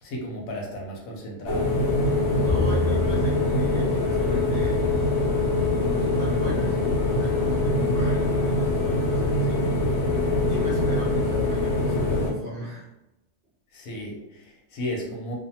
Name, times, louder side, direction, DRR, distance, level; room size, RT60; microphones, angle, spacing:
voice 1, 0.0-1.9 13.7-15.4, left 1 dB, 85° left, -1 dB, 1.2 m, -34 dB
sound 1, 1.5-12.3, left 2 dB, 65° left, 0.8 m, -23 dB
voice 2, 2.0-4.9 5.5-9.8 10.5-12.9, equal, 50° right, -5 dB, 0.7 m, -37 dB
Bowed string instrument, 2.5-8.8, left 1 dB, 30° left, 0.4 m, -34 dB
2.5 x 2.4 x 2.7 m, 0.94 s
omnidirectional pair, 1.4 m